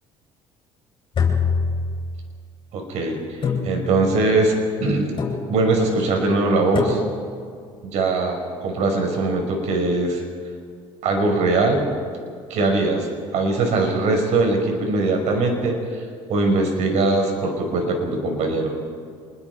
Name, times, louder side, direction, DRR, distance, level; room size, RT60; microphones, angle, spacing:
sound 1, 1.1-2.4 3.4-4.2 5.2-5.8 6.8-7.4, left 5 dB, 40° left, 7.3 m, -25 dB
voice 1, 2.7-3.4 3.6-5.1 5.5-7.0 7.8-10.2 11.0-11.9 12.5-13.1 13.3-15.8 16.3-18.7, right 2 dB, 70° right, 3 dB, 5.5 m, -21 dB
26.0 x 21.5 x 4.9 m, 2.2 s
supercardioid pair, 90°, 12 cm